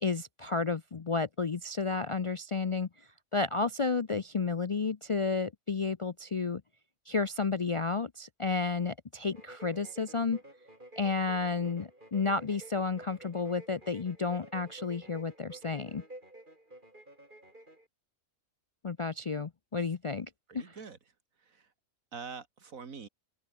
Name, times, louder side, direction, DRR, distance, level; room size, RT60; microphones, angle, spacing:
voice 1, 0.0-2.9 3.3-6.6 7.1-10.4 11.0-16.0 18.8-20.3 20.5-20.6, left 4 dB, 55° left, 0.3 m, -31 dB
sound 1, 9.3-17.9, right 1 dB, 35° right, 7.3 m, -51 dB
voice 2, 20.5-21.7 22.1-23.1, right 5 dB, 80° right, 2.4 m, -46 dB
open air
omnidirectional pair, 1.4 m